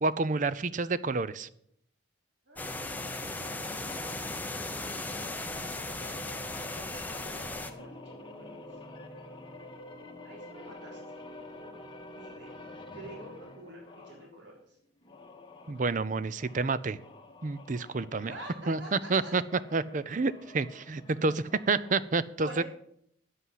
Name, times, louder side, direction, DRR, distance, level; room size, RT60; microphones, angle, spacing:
voice 1, 0.0-1.5 15.7-17.0 17.4-18.3 18.7-19.4 19.7-22.6, right 3 dB, 45° right, 17 dB, 0.5 m, -29 dB
voice 2, 2.5-3.0 7.1-8.6 10.2-11.0 12.1-12.5 12.9-14.8 18.2-19.3 22.4-22.6, right 1 dB, 65° right, -1 dB, 3.5 m, -47 dB
sound 1, 2.6-14.3 15.0-22.1, left 1 dB, 25° left, 1.7 m, -48 dB
sound 2, 2.6-7.7, left 2 dB, 10° left, 0.8 m, -37 dB
9.8 x 8.2 x 7.4 m, 0.71 s
head